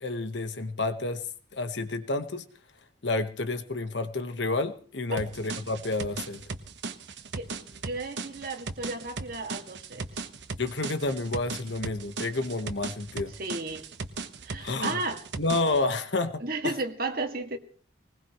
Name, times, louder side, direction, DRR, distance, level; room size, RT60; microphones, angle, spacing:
voice 1, 0.0-1.2 1.5-2.4 3.0-6.4 10.6-13.3 14.6-15.0 15.4-16.7, left 2 dB, 75° left, 9 dB, 1.3 m, -30 dB
sound 1, 5.2-15.8, right 4 dB, 70° right, 1.2 m, -38 dB
voice 2, 7.4-10.1 13.4-13.8 14.4-15.2 16.4-17.6, right 3 dB, 50° right, 4 dB, 2.2 m, -34 dB
21.0 x 20.0 x 3.1 m, 0.41 s
head